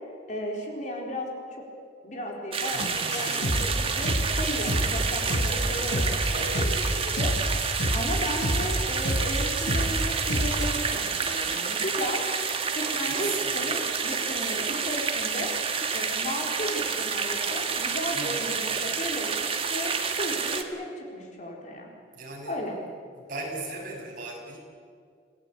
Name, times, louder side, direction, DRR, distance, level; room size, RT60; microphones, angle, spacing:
voice 1, 0.3-1.6 2.0-6.8 7.2-7.6 7.9-12.2 12.7-15.5 15.9-21.9 22.4-22.8, equal, 40° left, 0 dB, 4.3 m, -35 dB
sound 1, 2.5-20.6, right 5 dB, 30° right, 1.6 m, -29 dB
sound 2, 2.7-10.7, equal, 80° left, 5.5 m, -29 dB
voice 2, 3.2-3.6 6.3-7.2 13.1-13.8 18.1-18.4 22.1-22.5 23.3-24.6, right 2 dB, 50° right, -1 dB, 6.7 m, -37 dB
27.5 x 17.0 x 8.5 m, 2.2 s
head